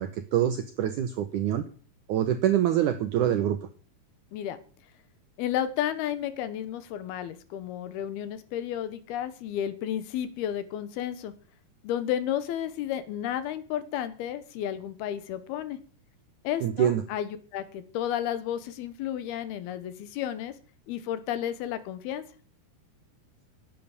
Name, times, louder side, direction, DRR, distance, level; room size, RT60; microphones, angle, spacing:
voice 1, 0.0-1.6 2.1-3.6 16.6-17.0, right 10 dB, 80° right, 9 dB, 1.8 m, -25 dB
voice 2, 5.4-11.3 11.8-15.8 16.4-20.6 20.9-22.2, left 10 dB, 75° left, 13 dB, 2.9 m, -32 dB
10.5 x 8.5 x 8.2 m, 0.41 s
omnidirectional pair, 4.7 m